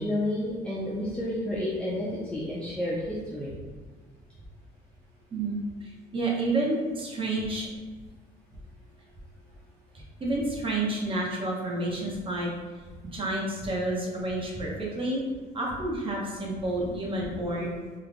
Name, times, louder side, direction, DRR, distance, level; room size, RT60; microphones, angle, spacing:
voice 1, 0.0-3.5 17.5-17.7, left 1 dB, 5° left, -8 dB, 0.7 m, -31 dB
voice 2, 5.3-7.7 10.2-12.5 13.1-15.2 15.5-17.7, right 2 dB, 30° right, -3 dB, 0.9 m, -29 dB
3.7 x 3.2 x 2.2 m, 1.4 s
cardioid pair, 110°, 17 cm